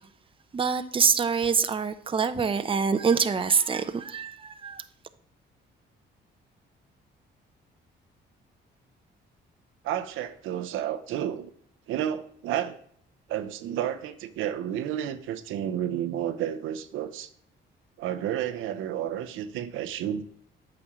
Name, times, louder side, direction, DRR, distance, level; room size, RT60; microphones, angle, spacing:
voice 1, 0.5-4.8, right 6 dB, 25° right, 0.6 m, -25 dB
voice 2, 9.8-11.5 11.9-12.8 13.3-17.3 18.0-20.2, right 10 dB, 90° right, 0.7 m, -31 dB
8.6 x 6.0 x 3.0 m
cardioid pair, 90°, 20 cm